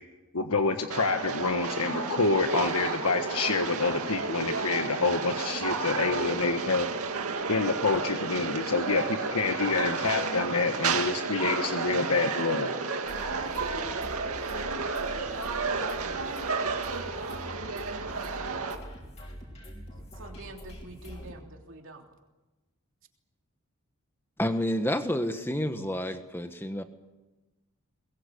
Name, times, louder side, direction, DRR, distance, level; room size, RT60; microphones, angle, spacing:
voice 1, 0.3-6.9 7.5-12.7, left 4 dB, 85° left, 5 dB, 1.5 m, -27 dB
sound 1, 0.9-18.7, right 4 dB, 80° right, 2.3 m, -32 dB
sound 2, 13.0-21.4, equal, 30° left, 5.8 m, -44 dB
voice 2, 20.1-22.1 25.7-25.9, right 2 dB, 60° right, 2 dB, 3.3 m, -46 dB
voice 3, 24.4-26.8, left 1 dB, 10° left, 8 dB, 1.4 m, -29 dB
22.5 x 21.5 x 8.4 m, 1.1 s
head